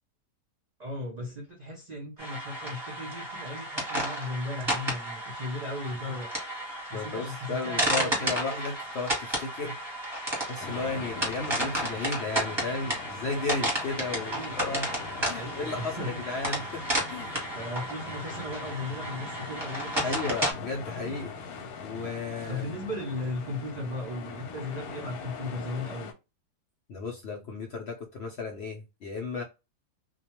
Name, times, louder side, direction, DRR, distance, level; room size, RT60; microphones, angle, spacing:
voice 1, 0.8-6.6 6.9-8.6 14.2-14.8 15.3-16.1 17.6-20.2 21.6-21.7 22.5-26.1, left 1 dB, 60° right, 0.4 m, -37 dB
sound 1, 2.2-20.5, right 1 dB, 20° right, 0.9 m, -32 dB
voice 2, 6.9-9.8 10.5-14.9 15.2-17.4 20.0-21.3 21.8-22.8 26.9-29.4, left 3 dB, 65° left, 0.6 m, -34 dB
sound 2, 10.6-26.1, left 5 dB, 85° left, 1.1 m, -42 dB
2.4 x 2.2 x 2.9 m
omnidirectional pair, 1.6 m